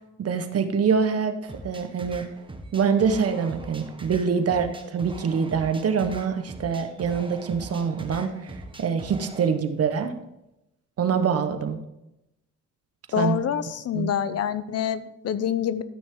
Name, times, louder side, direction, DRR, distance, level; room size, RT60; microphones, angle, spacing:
voice 1, 0.2-2.3 2.7-10.1 11.0-11.8 13.2-13.4 13.9-14.1, right 6 dB, 50° right, 8 dB, 1.1 m, -25 dB
sound 1, 1.5-9.5, right 2 dB, 15° right, 1.4 m, -42 dB
voice 2, 13.1-15.8, left 9 dB, 55° left, 14 dB, 0.7 m, -26 dB
13.0 x 6.2 x 3.8 m, 0.89 s
cardioid pair, 90°, 30 cm